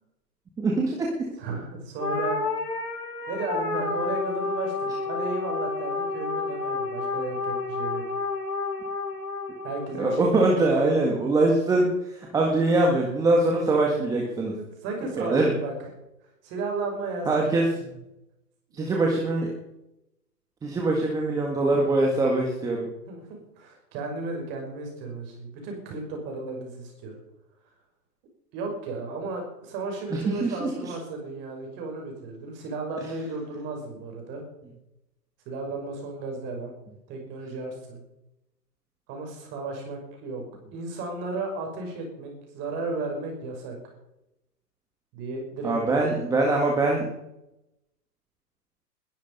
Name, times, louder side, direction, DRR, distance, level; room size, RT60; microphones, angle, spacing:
voice 1, 0.6-1.1 10.0-14.5 15.2-15.5 17.2-17.7 18.7-19.5 20.6-22.9 30.1-30.9 45.6-47.1, right 2 dB, 5° right, -1 dB, 1.8 m, -23 dB
voice 2, 1.4-2.4 3.3-8.0 9.6-11.1 14.6-15.7 16.4-17.5 18.7-19.0 23.1-27.2 28.5-34.4 35.5-36.7 37.1-38.0 39.1-40.4 40.7-43.9 45.1-46.1, right 3 dB, 20° right, 2 dB, 5.9 m, -34 dB
sound 1, 2.0-10.6, left 3 dB, 75° left, 4.5 m, -30 dB
21.5 x 12.0 x 5.4 m, 0.89 s
hypercardioid pair, 155°, 49 cm